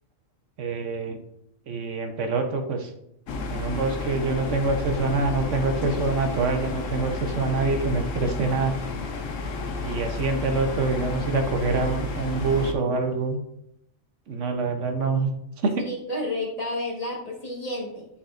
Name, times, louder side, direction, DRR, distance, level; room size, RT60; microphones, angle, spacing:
voice 1, 0.6-1.2 1.7-2.9 3.5-8.7 9.8-13.4 14.3-15.3 15.6-15.8, right 3 dB, 70° right, 5 dB, 1.1 m, -25 dB
sound 1, 3.3-12.7, left 3 dB, 75° left, 1.1 m, -31 dB
voice 2, 15.9-18.1, left 1 dB, 30° left, -2 dB, 1.5 m, -31 dB
10.5 x 4.2 x 2.5 m, 0.76 s
omnidirectional pair, 1.4 m